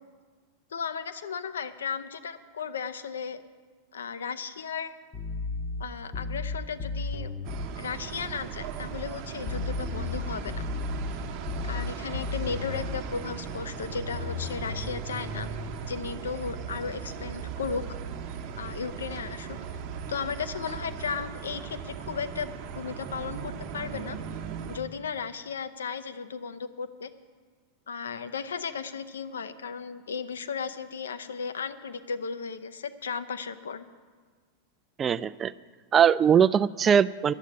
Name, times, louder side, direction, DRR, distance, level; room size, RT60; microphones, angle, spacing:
voice 1, 0.7-3.4 3.9-4.9 5.8-7.3 7.8-10.6 11.6-15.5 15.9-17.8 18.6-19.8 20.1-22.5 22.7-24.2 24.7-27.1 27.9-33.9, left 6 dB, 65° left, 10 dB, 0.6 m, -35 dB
sound 1, 5.1-7.7 9.5-13.1 14.1-15.8, left 3 dB, 20° left, 0.9 m, -34 dB
sound 2, 7.4-24.8, right 7 dB, 40° right, 0.9 m, -38 dB
voice 2, 35.0-35.5 35.9-37.3, right 8 dB, 25° right, 16 dB, 0.3 m, -21 dB
10.5 x 8.2 x 9.8 m, 1.5 s
figure-of-eight pair, 90°, 0 cm